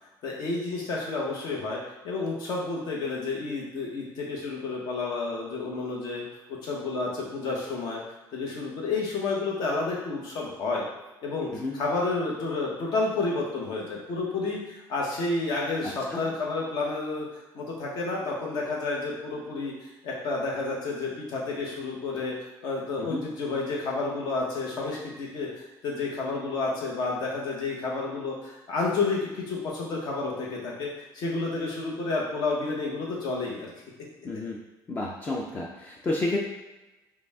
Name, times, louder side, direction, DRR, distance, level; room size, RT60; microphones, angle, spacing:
voice 1, 0.2-6.2 6.5-8.0 8.3-10.9 11.2-22.3 22.6-30.9 31.1-33.7, left 3 dB, 60° left, -2 dB, 1.1 m, -30 dB
voice 2, 15.8-16.2 23.0-23.2 34.2-34.6 34.9-36.4, left 2 dB, 20° left, -2 dB, 0.4 m, -31 dB
5.0 x 2.4 x 3.5 m, 1.1 s
cardioid pair, 165°, 8 cm